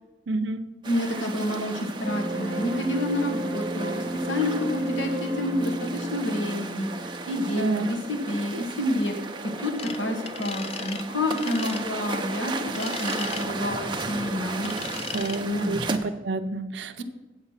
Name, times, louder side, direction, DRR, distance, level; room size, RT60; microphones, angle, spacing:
voice 1, 0.3-0.6 7.5-7.9 15.1-17.0, right 3 dB, 70° right, 8 dB, 0.5 m, -28 dB
voice 2, 0.8-6.9 7.3-9.1 9.4-15.0 15.4-15.7 17.0-17.1, left 1 dB, 85° left, 3 dB, 1.3 m, -29 dB
sound 1, 0.8-16.0, right 3 dB, 25° right, 0.6 m, -35 dB
sound 2, 2.0-9.0, right 1 dB, 45° right, 1.0 m, -34 dB
sound 3, 9.8-10.0 10.3-11.0 11.3-11.8 12.7-13.5 14.6-15.4, left 6 dB, 35° left, 0.5 m, -36 dB
8.2 x 7.9 x 5.7 m, 1.1 s
head